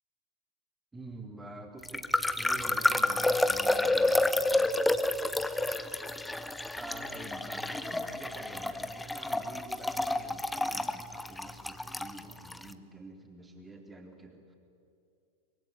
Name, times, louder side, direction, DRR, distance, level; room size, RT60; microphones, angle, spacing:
voice 1, 0.9-2.1 2.3-4.7 6.8-14.5, right 2 dB, 10° right, 4 dB, 3.7 m, -47 dB
sound 1, 1.8-12.6, left 2 dB, 5° left, 1.0 m, -29 dB
24.0 x 23.0 x 9.9 m, 2.5 s
figure-of-eight pair, 90°, 0 cm